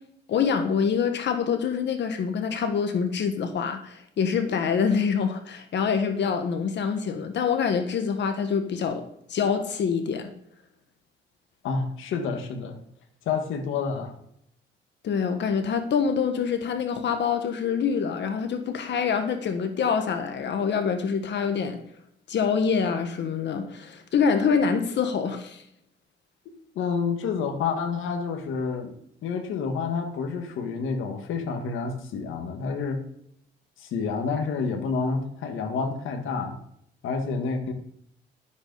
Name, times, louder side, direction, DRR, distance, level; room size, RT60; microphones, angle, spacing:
voice 1, 0.3-10.3 15.0-21.8 22.3-25.6, left 6 dB, 65° left, 7 dB, 1.4 m, -25 dB
voice 2, 11.6-12.8 13.3-14.2 26.8-29.0 29.2-33.0 33.8-36.6 37.0-37.7, left 5 dB, 80° left, 6 dB, 1.7 m, -29 dB
12.0 x 8.1 x 4.0 m, 0.70 s
cardioid pair, 90°, 20 cm